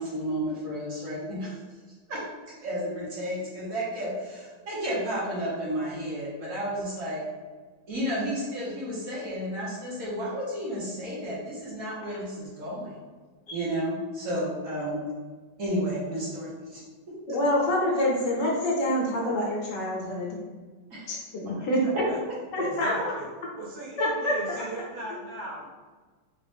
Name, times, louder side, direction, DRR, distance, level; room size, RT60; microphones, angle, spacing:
voice 1, 0.0-1.5 2.1-2.2 2.6-7.2 7.9-12.9 13.5-15.0 15.6-16.8 20.9-21.1 21.4-21.7 21.9-22.0 22.6-22.7, equal, 50° right, -6 dB, 1.3 m, -32 dB
voice 2, 17.3-20.4 21.1-21.8 22.5-22.9 24.0-24.3, left 1 dB, 70° left, -3 dB, 1.3 m, -26 dB
voice 3, 21.8-22.2 22.5-23.3 23.6-25.6, right 2 dB, 80° right, -6 dB, 2.0 m, -38 dB
4.0 x 2.5 x 3.4 m, 1.4 s
omnidirectional pair, 2.2 m